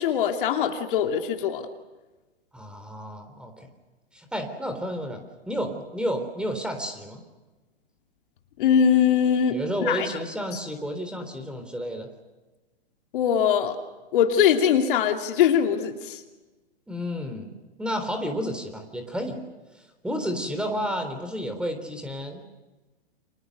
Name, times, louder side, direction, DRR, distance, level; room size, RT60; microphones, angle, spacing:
voice 1, 0.0-1.6 8.6-9.6 9.9-10.1 13.1-13.8 14.1-16.2, left 8 dB, 50° left, 5 dB, 2.8 m, -22 dB
voice 2, 2.5-3.7 4.1-7.2 9.5-12.1 16.9-17.5 17.8-19.4 20.0-22.4, equal, 5° right, 6 dB, 3.7 m, -31 dB
29.5 x 27.0 x 6.7 m, 1.2 s
hypercardioid pair, 120°, 32 cm